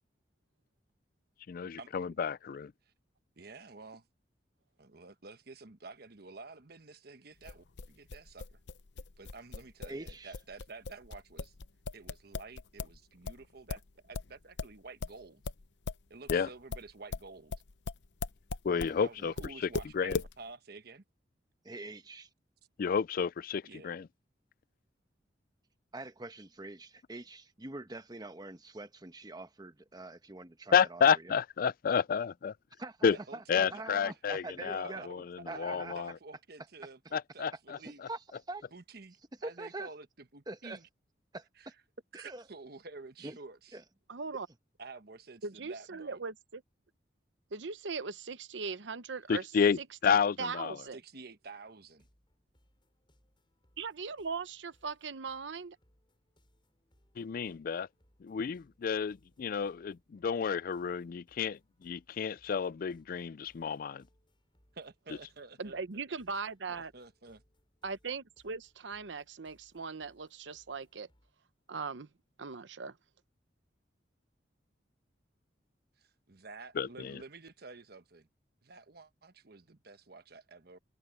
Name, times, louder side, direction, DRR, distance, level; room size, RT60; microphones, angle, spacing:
voice 1, 1.5-2.7 16.3-16.5 18.6-19.3 19.9-20.2 22.8-24.1 30.7-32.5 33.0-33.2 33.5-35.2 35.6-36.1 37.1-37.8 49.3-50.7 57.2-57.9 58.2-64.0 76.8-77.2, left 6 dB, 50° left, 0.4 m, -30 dB
voice 2, 3.4-4.1 4.8-8.6 9.2-11.5 11.9-15.4 16.1-17.5 19.0-21.0 23.6-24.0 33.0-38.0 38.7-40.9 41.6-41.7 42.1-43.8 44.8-46.2 50.9-52.1 64.7-65.8 66.7-67.4 76.0-78.3 78.6-80.8, right 3 dB, 60° right, 1.2 m, -50 dB
sound 1, 7.4-13.0 13.2-19.0 19.4-20.3, left 4 dB, 70° left, 0.7 m, -39 dB
voice 3, 9.9-10.3 18.7-19.3 21.6-22.3 25.9-31.3 32.8-33.0 33.3-35.0 35.5-35.9 37.8-38.2 38.5-38.6 39.4-39.9 40.5-40.8 41.3-41.7 42.1-42.4 43.2-43.4 43.7-43.8, right 2 dB, 20° right, 1.1 m, -44 dB
voice 4, 44.1-44.5 45.4-46.6 47.5-49.5 49.8-51.0 53.8-55.8 65.6-66.9 67.8-71.1 71.7-72.1 72.4-73.0, right 4 dB, 80° right, 0.8 m, -39 dB
sound 2, 51.9-71.3, equal, 25° left, 7.6 m, -71 dB
head